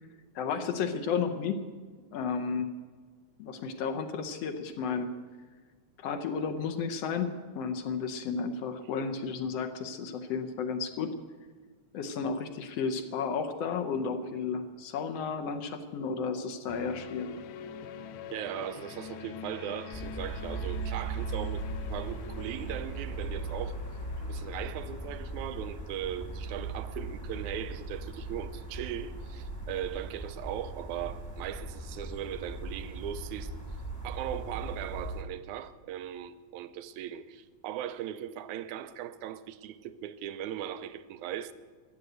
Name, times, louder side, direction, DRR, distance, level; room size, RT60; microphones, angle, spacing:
voice 1, 0.4-1.6 2.1-2.7 3.4-5.1 6.0-11.1 11.9-17.4, left 5 dB, 70° left, 1.8 m, -33 dB
sound 1, 16.7-28.0, left 7 dB, 85° left, 2.2 m, -46 dB
voice 2, 18.3-21.6 21.9-23.8 24.2-33.5 34.0-41.5, right 10 dB, 85° right, 2.1 m, -38 dB
sound 2, 19.9-35.2, right 2 dB, 10° left, 1.0 m, -38 dB
14.5 x 11.0 x 7.9 m
omnidirectional pair, 3.4 m